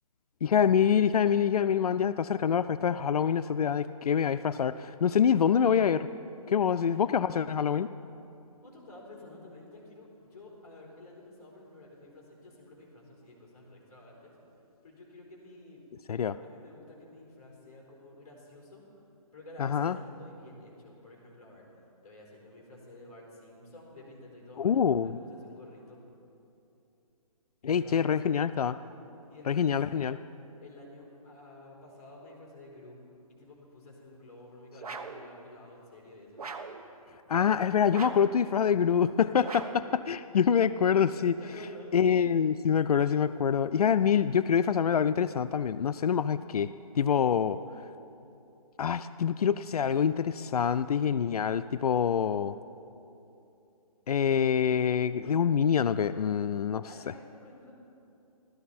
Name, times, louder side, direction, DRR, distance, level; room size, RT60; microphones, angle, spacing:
voice 1, 0.4-6.1 6.5-7.9 16.1-16.4 19.6-20.0 24.6-25.2 27.6-28.8 29.5-30.2 37.3-39.6 39.9-41.4 41.9-47.9 48.8-52.6 54.1-56.8, left 7 dB, 80° left, 12 dB, 0.4 m, -26 dB
voice 2, 6.7-7.1 8.6-14.3 14.8-15.8 16.4-18.8 19.3-21.6 22.0-26.0 27.6-28.5 29.3-29.7 30.6-33.0 33.3-36.4 39.3-39.5 41.4-42.0 56.8-57.7, left 1 dB, 15° left, -4 dB, 3.7 m, -51 dB
sound 1, 34.8-35.3 36.4-36.8 37.9-38.4 39.4-39.9, right 4 dB, 80° right, 1.0 m, -40 dB
16.0 x 13.0 x 4.3 m, 2.8 s
hypercardioid pair, 170°, 19 cm